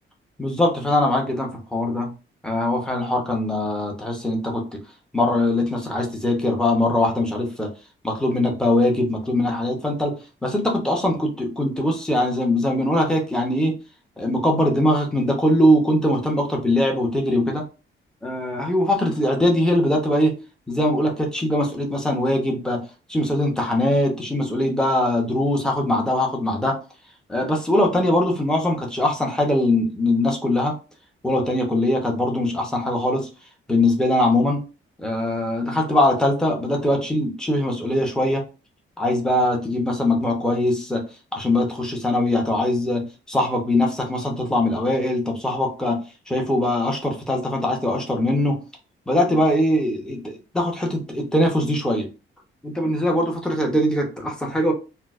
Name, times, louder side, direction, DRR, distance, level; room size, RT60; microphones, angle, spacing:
voice 1, 0.4-2.1 2.4-4.8 5.1-7.7 8.0-10.1 10.4-13.7 14.2-17.6 18.2-20.4 20.7-22.8 23.1-26.8 27.3-30.7 31.2-33.3 33.7-34.6 35.0-38.4 39.0-41.0 41.3-48.6 49.1-52.1 52.6-54.7, left 1 dB, 5° left, 0 dB, 0.7 m, -21 dB
4.4 x 2.0 x 2.4 m, 0.32 s
wide cardioid pair, 170°, 21 cm